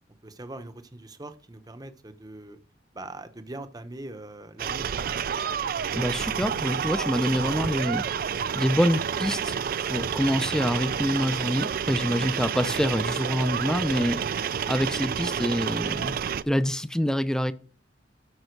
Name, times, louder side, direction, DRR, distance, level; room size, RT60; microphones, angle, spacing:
voice 1, 0.2-2.6 2.9-5.0, right 2 dB, 20° right, 0.8 m, -41 dB
sound 1, 4.6-16.4, right 7 dB, 55° right, 0.4 m, -29 dB
voice 2, 5.9-9.6 9.8-16.2 16.4-17.5, equal, 5° left, 0.5 m, -26 dB
13.0 x 5.4 x 4.6 m
head